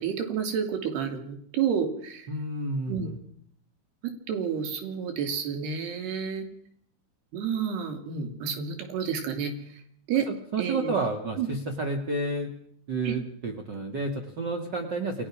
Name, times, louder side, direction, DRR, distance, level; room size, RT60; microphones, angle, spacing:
voice 1, 0.0-2.3 2.9-3.1 4.0-6.5 7.3-9.8 10.1-10.3 10.6-10.9 11.4-11.5 13.0-13.2, right 7 dB, 70° right, 7 dB, 4.9 m, -30 dB
voice 2, 2.3-3.2 10.3-12.5 12.9-15.3, right 2 dB, 45° right, 4 dB, 1.4 m, -30 dB
28.5 x 19.5 x 6.1 m, 0.64 s
omnidirectional pair, 4.9 m